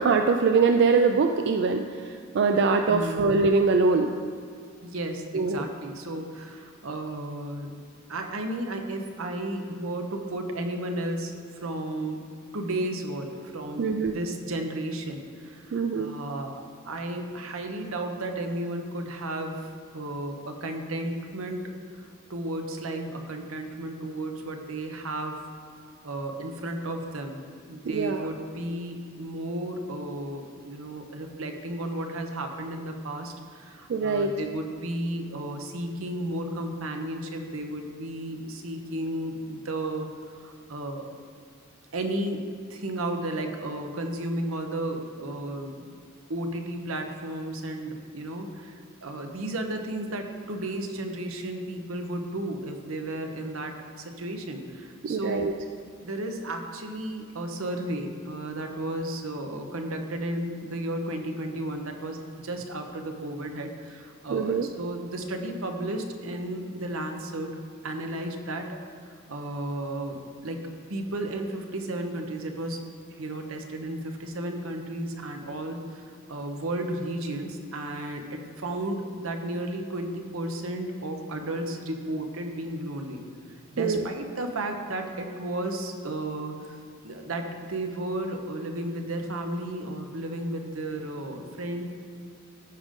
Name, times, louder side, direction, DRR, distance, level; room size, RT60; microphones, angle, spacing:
voice 1, 0.0-1.8 2.3-4.1 5.3-5.6 13.8-14.1 15.7-16.1 27.9-28.3 33.9-34.3 55.0-55.5 64.3-64.7 83.8-84.0, right 4 dB, 55° right, 5 dB, 0.4 m, -23 dB
voice 2, 2.9-3.2 4.8-7.7 8.1-22.0 22.3-25.5 26.0-27.4 27.7-40.1 40.4-41.2 41.9-46.0 46.3-55.4 56.0-67.5 67.8-68.8 69.3-70.6 70.9-72.8 73.2-83.2 83.7-91.8, right 1 dB, 85° right, 4 dB, 0.9 m, -33 dB
14.0 x 5.1 x 3.7 m, 2.1 s
head